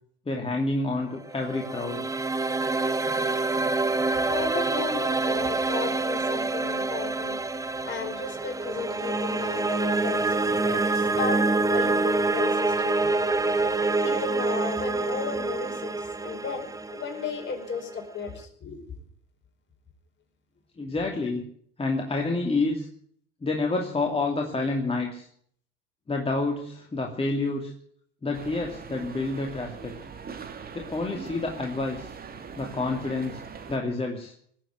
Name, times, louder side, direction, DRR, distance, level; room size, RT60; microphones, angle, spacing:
voice 1, 0.3-2.0 20.8-21.4 21.8-22.9 23.4-25.3 26.1-27.7 28.2-30.0 30.7-32.1 32.6-33.4 33.7-34.3, left 3 dB, 20° left, 1 dB, 2.7 m, -28 dB
sound 1, 1.2-18.3, right 3 dB, 10° right, 1.2 m, -26 dB
voice 2, 3.8-18.8, left 5 dB, 40° left, 3 dB, 4.9 m, -35 dB
sound 2, 28.3-33.8, right 6 dB, 30° right, 2.6 m, -41 dB
19.0 x 7.6 x 9.3 m, 0.62 s
hypercardioid pair, 80°, 30 cm